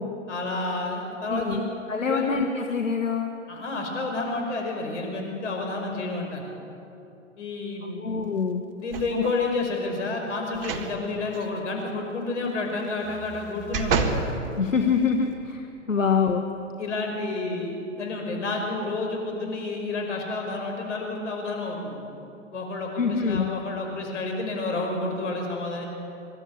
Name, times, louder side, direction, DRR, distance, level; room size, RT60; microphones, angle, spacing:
voice 1, 0.3-1.6 2.0-2.3 3.5-6.4 7.4-8.1 8.8-14.3 16.8-22.0 22.5-25.9, left 3 dB, 65° left, 2 dB, 5.7 m, -30 dB
voice 2, 1.3-1.6 1.9-3.3 7.8-8.6 9.1-9.2 14.6-16.4 23.0-23.5, left 5 dB, 85° left, 5 dB, 1.4 m, -25 dB
sound 1, 8.9-9.5 10.5-10.9 11.3-11.4 13.0-14.3 14.9-15.0, right 5 dB, 45° right, 1.8 m, -28 dB
24.5 x 13.0 x 8.5 m, 2.8 s
figure-of-eight pair, 120°, 38 cm